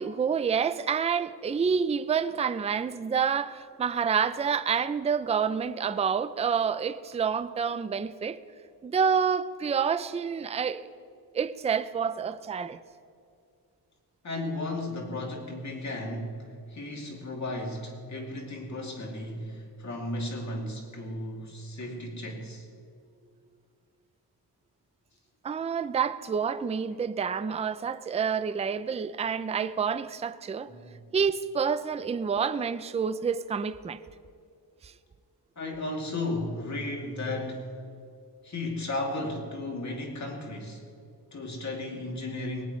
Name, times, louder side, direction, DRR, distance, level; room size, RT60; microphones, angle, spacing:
voice 1, 0.0-8.4 8.8-10.9 11.3-12.8 25.4-30.7 31.1-34.0 34.8-34.9, right 6 dB, 15° right, 0.3 m, -28 dB
voice 2, 14.2-22.7 30.7-31.1 35.6-37.8 38.4-40.8 41.3-42.6, left 2 dB, 40° left, 2.6 m, -35 dB
19.5 x 18.5 x 3.1 m
wide cardioid pair, 175°, 41 cm